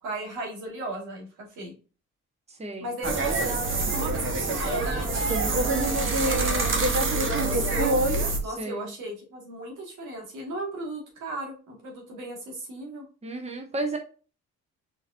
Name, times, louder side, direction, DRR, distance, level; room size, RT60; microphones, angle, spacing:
voice 1, 0.0-1.7 2.8-8.0 8.4-13.0, right 1 dB, 85° right, 0 dB, 2.1 m, -36 dB
voice 2, 2.6-2.9 8.6-8.9 13.2-14.0, right 2 dB, 20° right, 3 dB, 1.3 m, -32 dB
sound 1, 3.0-8.4, right 2 dB, 40° right, 1.3 m, -25 dB
4.5 x 3.8 x 2.7 m, 0.36 s
cardioid pair, 90°, 30 cm